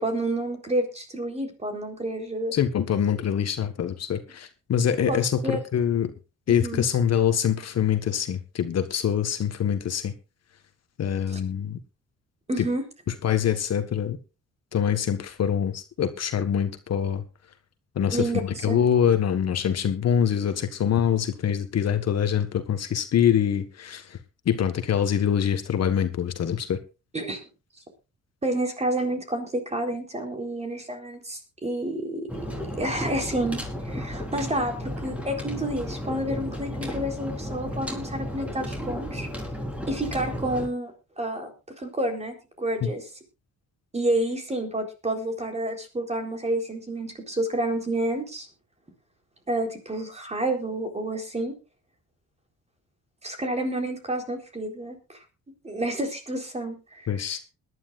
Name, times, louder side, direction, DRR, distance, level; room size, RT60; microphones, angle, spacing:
voice 1, 0.0-2.5 5.1-5.6 6.5-6.9 11.3-11.4 12.5-12.8 18.1-18.8 27.1-27.4 28.4-34.7 35.0-39.3 39.9-40.9 41.2-41.5 41.8-43.0 43.9-48.5 49.5-51.6 53.2-55.2 55.6-57.1, right 1 dB, 20° right, 4 dB, 4.0 m, -29 dB
voice 2, 2.5-6.1 6.5-10.1 11.0-11.8 12.6-12.7 13.2-14.2 14.7-17.2 17.9-24.2 24.4-26.8 42.8-42.9 57.1-57.4, left 8 dB, 55° left, 8 dB, 1.5 m, -24 dB
sound 1, 32.3-40.7, equal, 5° right, 4.3 m, -33 dB
21.0 x 11.5 x 2.5 m, 0.29 s
cardioid pair, 90°, 30 cm